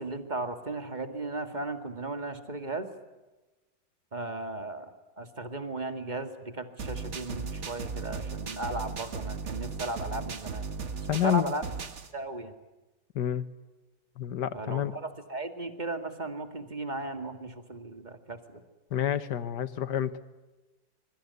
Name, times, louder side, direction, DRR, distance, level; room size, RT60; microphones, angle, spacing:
voice 1, 0.0-2.9 4.1-4.9 5.2-10.7 11.2-11.6 12.1-12.5 14.5-18.6, right 2 dB, 25° right, 7 dB, 2.1 m, -36 dB
sound 1, 6.8-12.1, right 5 dB, 40° right, 1.7 m, -37 dB
voice 2, 11.1-11.5 13.2-13.5 14.2-15.0 18.9-20.1, left 11 dB, 70° left, 14 dB, 1.7 m, -28 dB
25.5 x 23.0 x 9.6 m, 1.1 s
omnidirectional pair, 1.9 m